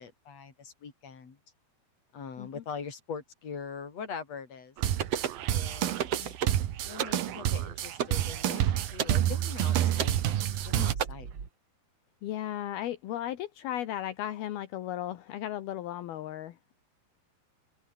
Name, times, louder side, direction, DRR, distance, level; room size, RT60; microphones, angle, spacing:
voice 1, 0.0-1.4 2.1-4.8 5.5-6.3 6.8-11.3, left 6 dB, 40° left, 4.9 m, -42 dB
sound 1, 4.8-10.9, right 12 dB, 70° right, 3.2 m, -29 dB
sound 2, 5.0-5.4 6.0-6.6 7.0-7.2 8.0-8.2 9.0-9.2 10.0-10.2 11.0-11.1, right 9 dB, 50° right, 2.2 m, -31 dB
sound 3, 9.9-11.5, right 6 dB, 35° right, 2.4 m, -41 dB
voice 2, 12.2-16.8, left 12 dB, 70° left, 3.2 m, -36 dB
open air
omnidirectional pair, 4.6 m